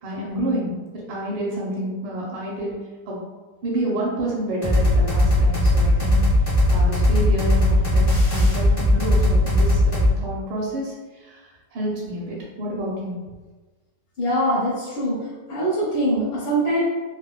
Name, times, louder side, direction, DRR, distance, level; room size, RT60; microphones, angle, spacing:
voice 1, 0.0-0.7 1.1-2.7 3.1-3.2 3.6-6.2 6.7-10.9 11.7-13.1, right 1 dB, 75° right, -5 dB, 1.6 m, -28 dB
sound 1, 4.6-10.1, left 1 dB, 35° left, 0.3 m, -18 dB
voice 2, 14.2-15.2 15.5-16.8, right 1 dB, 70° left, -5 dB, 1.2 m, -22 dB
4.1 x 2.1 x 2.2 m, 1.3 s
omnidirectional pair, 2.4 m